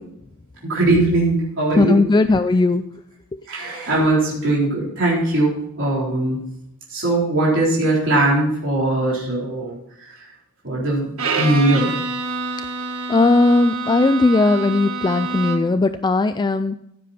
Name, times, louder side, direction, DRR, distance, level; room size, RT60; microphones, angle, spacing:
voice 1, 0.7-2.0 3.5-6.4 6.9-9.8 10.6-11.9, right 2 dB, 60° right, -5 dB, 4.1 m, -20 dB
voice 2, 1.8-2.8 13.1-16.7, left 3 dB, 20° left, 10 dB, 0.3 m, -17 dB
Bowed string instrument, 11.2-15.9, right 3 dB, 80° right, 1.5 m, -27 dB
15.0 x 7.6 x 4.3 m, 0.76 s
head